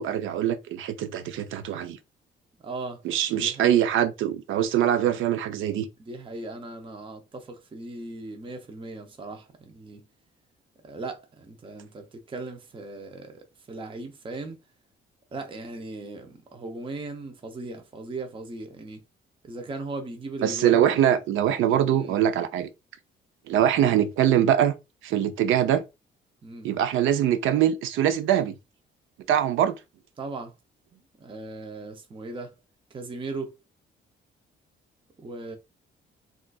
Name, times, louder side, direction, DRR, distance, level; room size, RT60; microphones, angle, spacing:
voice 1, 0.0-2.0 3.0-5.9 20.4-22.7 23.5-24.7 25.0-25.8 26.6-28.5 29.3-29.8, right 10 dB, 80° right, 0.5 m, -23 dB
voice 2, 2.6-3.0 3.3-3.9 6.0-10.0 10.8-14.6 15.3-19.0 19.4-20.8 21.9-22.1 26.4-26.7 30.2-30.5 30.9-32.5 32.9-33.5 35.2-35.6, right 2 dB, 25° right, 0.6 m, -38 dB
3.7 x 2.4 x 2.3 m
cardioid pair, 90°, 20 cm